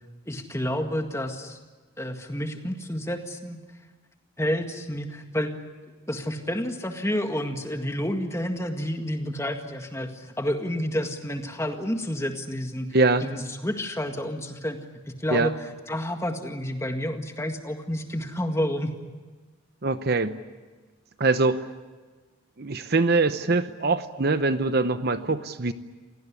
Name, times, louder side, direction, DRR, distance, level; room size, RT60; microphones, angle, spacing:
voice 1, 0.3-1.6 2.0-3.6 4.4-5.5 6.1-14.8 15.1-15.5 15.9-18.9, equal, 15° left, 5 dB, 1.9 m, -30 dB
voice 2, 12.9-13.2 15.3-15.5 19.8-20.4 21.2-21.7 22.6-25.7, right 3 dB, 50° right, 11 dB, 0.8 m, -23 dB
28.0 x 18.0 x 9.8 m, 1.4 s
head